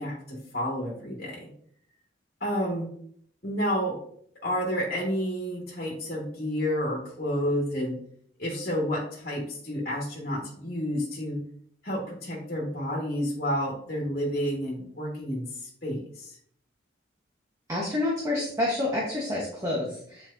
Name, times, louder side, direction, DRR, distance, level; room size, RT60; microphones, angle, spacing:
voice 1, 0.0-1.4 2.4-2.9 3.4-4.0 4.4-8.0 8.4-11.4 11.8-16.4, equal, 45° left, -4 dB, 1.6 m, -30 dB
voice 2, 17.7-20.3, left 2 dB, 15° right, -4 dB, 1.1 m, -28 dB
8.0 x 4.6 x 2.7 m, 0.64 s
head